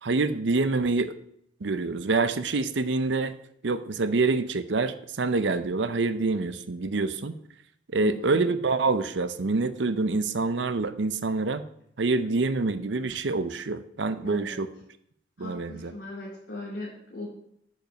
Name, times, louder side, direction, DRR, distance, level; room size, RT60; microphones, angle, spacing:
voice 1, 0.0-1.1 1.6-3.3 3.6-7.4 7.9-11.6 12.0-14.7 15.4-15.9, right 3 dB, 90° right, 12 dB, 0.7 m, -26 dB
voice 2, 8.0-8.4 14.2-14.6 15.4-17.3, left 2 dB, 75° left, -6 dB, 2.6 m, -39 dB
9.1 x 5.4 x 5.2 m, 0.71 s
head